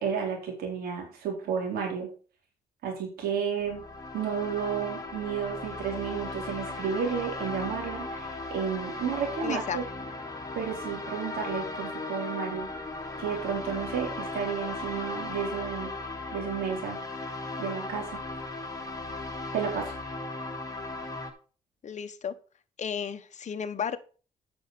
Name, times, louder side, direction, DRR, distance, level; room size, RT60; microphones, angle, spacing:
voice 1, 0.0-2.1 2.8-3.8 4.1-9.8 10.6-12.7 13.2-16.0 16.3-17.0 17.6-18.2 19.5-19.9, right 7 dB, 90° right, 1 dB, 4.0 m, -32 dB
sound 1, 3.6-21.3, left 2 dB, 25° left, 2.7 m, -37 dB
voice 2, 9.4-9.8 21.8-22.3 22.8-24.0, left 7 dB, 50° left, 9 dB, 1.1 m, -33 dB
9.1 x 6.3 x 5.8 m, 0.38 s
cardioid pair, 75°, 15 cm